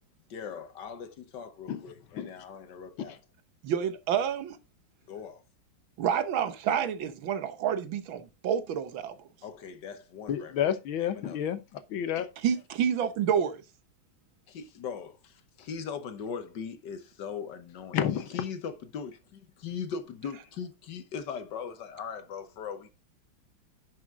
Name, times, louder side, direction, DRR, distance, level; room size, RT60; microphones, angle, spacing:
voice 1, 0.3-3.2 5.1-5.4 9.4-10.7 11.0-11.4 14.5-18.0 18.3-22.9, left 6 dB, 65° left, 1.6 m, -40 dB
voice 2, 3.6-4.6 6.0-9.2 12.4-13.6, right 8 dB, 75° right, 1.7 m, -28 dB
voice 3, 10.3-12.3 17.9-18.4, left 9 dB, 80° left, 1.8 m, -30 dB
11.0 x 6.3 x 3.7 m
omnidirectional pair, 2.2 m